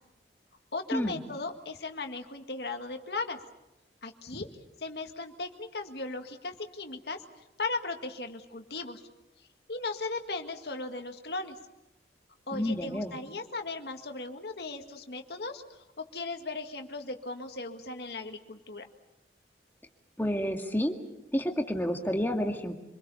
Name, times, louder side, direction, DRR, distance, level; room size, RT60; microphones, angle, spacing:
voice 1, 0.7-3.4 4.0-4.5 4.8-7.2 7.6-9.0 9.7-11.6 12.5-15.6 16.0-18.9, left 3 dB, 65° left, 5 dB, 1.9 m, -37 dB
voice 2, 12.5-13.2 20.2-21.0 21.3-22.8, equal, 10° left, 3 dB, 2.0 m, -29 dB
26.5 x 21.5 x 7.1 m, 0.96 s
head